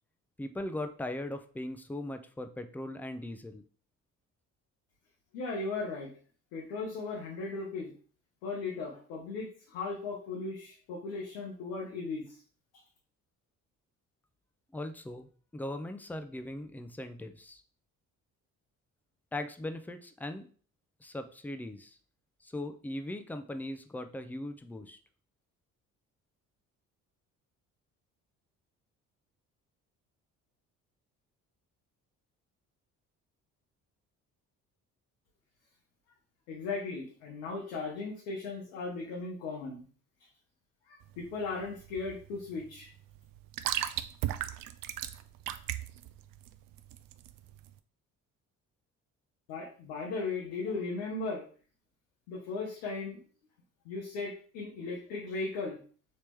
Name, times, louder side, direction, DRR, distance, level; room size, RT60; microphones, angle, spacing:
voice 1, 0.4-3.6 14.7-15.3 15.5-17.6 19.3-20.5 21.0-22.0 22.4-25.0, left 1 dB, 5° left, 7 dB, 0.4 m, -39 dB
voice 2, 5.3-6.1 6.5-7.9 8.4-12.4 36.5-39.8 40.9-42.9 49.5-51.5 52.3-53.2 53.8-55.8, left 3 dB, 80° left, -2 dB, 0.9 m, -37 dB
sound 1, 41.0-47.7, right 12 dB, 60° right, 0.5 m, -37 dB
3.2 x 2.9 x 3.3 m, 0.42 s
hypercardioid pair, 50°, 40 cm